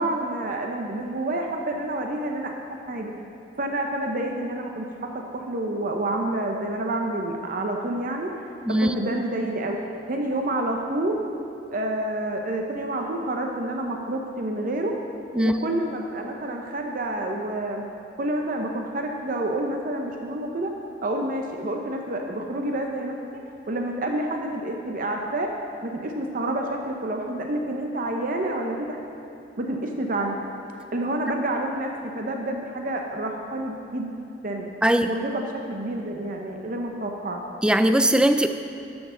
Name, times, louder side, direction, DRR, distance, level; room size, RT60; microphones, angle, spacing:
voice 1, 0.0-2.5 2.9-3.1 3.6-4.9 5.1-8.5 8.8-9.8 10.1-11.3 11.7-14.9 15.3-17.8 18.2-20.7 21.0-23.1 23.7-25.5 25.8-29.0 29.6-30.4 30.9-31.9 32.1-34.2 34.4-34.7 35.1-37.4, right 1 dB, 50° right, 2 dB, 0.7 m, -28 dB
voice 2, 37.6-38.5, right 1 dB, 5° right, 8 dB, 0.3 m, -19 dB
12.5 x 7.1 x 3.8 m, 2.7 s
head